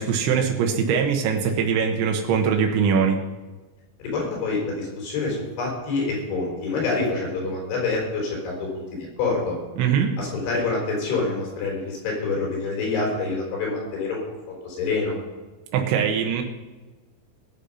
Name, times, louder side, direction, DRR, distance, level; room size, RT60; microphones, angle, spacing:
voice 1, 0.0-3.2 9.8-10.2 15.7-16.4, right 6 dB, 85° right, 2 dB, 3.7 m, -22 dB
voice 2, 4.0-9.6 10.2-14.2 14.5-15.2, left 3 dB, 90° left, -2 dB, 7.2 m, -27 dB
19.5 x 7.2 x 5.6 m, 1.2 s
omnidirectional pair, 5.2 m